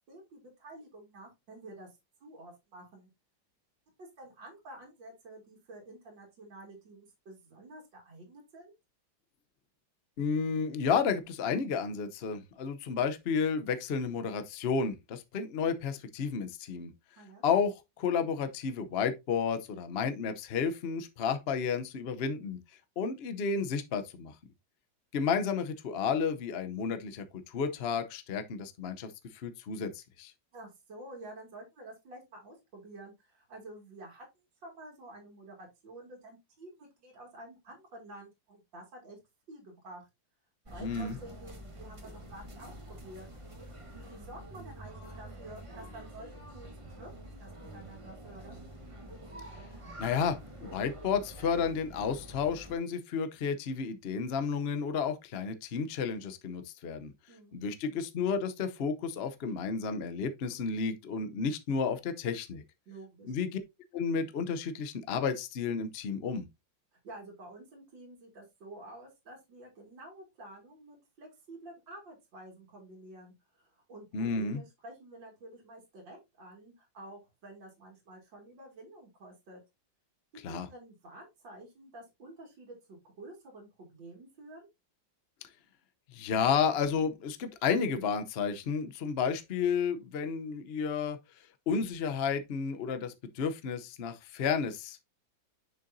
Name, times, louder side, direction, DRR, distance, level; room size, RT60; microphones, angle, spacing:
voice 1, 0.0-1.9 2.2-3.1 4.0-8.7 17.2-17.4 30.5-34.3 34.6-39.2 39.5-40.0 40.7-43.3 44.1-48.6 57.3-57.6 62.9-63.3 67.0-79.6 80.5-84.7, right 1 dB, 75° right, 2.9 m, -50 dB
voice 2, 10.2-16.9 17.4-22.6 23.0-24.3 25.1-30.3 40.8-41.2 50.0-50.4 50.6-57.1 57.5-62.6 63.3-63.6 63.9-66.5 74.1-74.6 80.4-80.7 86.1-91.2 91.7-95.0, left 6 dB, 60° left, 0.6 m, -32 dB
sound 1, 40.7-52.8, right 1 dB, 20° right, 1.2 m, -47 dB
6.8 x 6.5 x 2.6 m
omnidirectional pair, 2.0 m